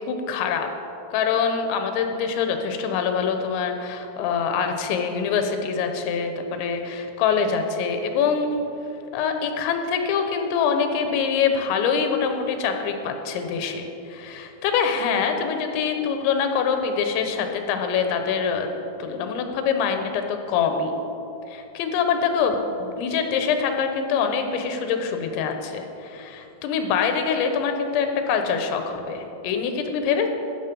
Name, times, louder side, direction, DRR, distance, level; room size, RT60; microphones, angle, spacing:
voice 1, 0.1-0.7 1.1-8.6 9.1-18.7 19.0-21.0 21.5-30.3, left 6 dB, 90° left, 6 dB, 3.3 m, -24 dB
12.5 x 9.7 x 5.3 m, 2.9 s
omnidirectional pair, 5.1 m